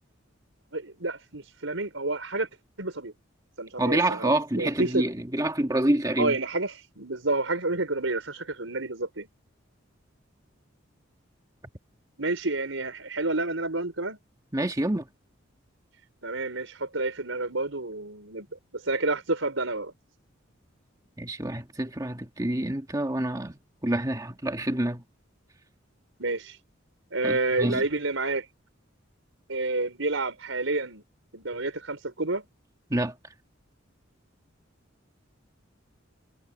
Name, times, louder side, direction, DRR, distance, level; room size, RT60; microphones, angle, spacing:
voice 1, 0.7-2.5 2.8-3.1 3.6-5.0 6.2-9.3 12.2-14.2 16.2-19.9 26.2-26.6 27.1-28.4 29.5-31.0 31.3-32.4, right 2 dB, 80° right, 5.2 m, -29 dB
voice 2, 3.8-6.3 14.5-15.1 21.2-25.0 27.2-27.8 32.9-33.1, right 1 dB, 20° right, 1.9 m, -27 dB
head